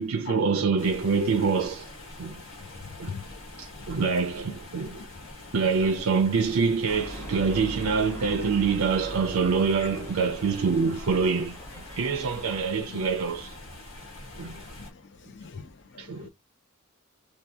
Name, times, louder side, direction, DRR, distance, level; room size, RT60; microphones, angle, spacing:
voice 1, 0.0-1.9 2.2-2.3 3.0-3.2 3.6-5.1 5.5-13.6 14.4-14.6 16.0-16.3, right 5 dB, 80° right, 0.5 m, -25 dB
sound 1, 0.8-14.9, left 1 dB, 90° left, 1.4 m, -45 dB
voice 2, 2.6-4.0 5.0-5.3 12.5-12.6 12.9-13.0 14.7-16.3, left 5 dB, 60° left, 0.5 m, -43 dB
sound 2, 6.9-12.7, left 1 dB, 15° left, 0.8 m, -41 dB
2.8 x 2.3 x 3.3 m
head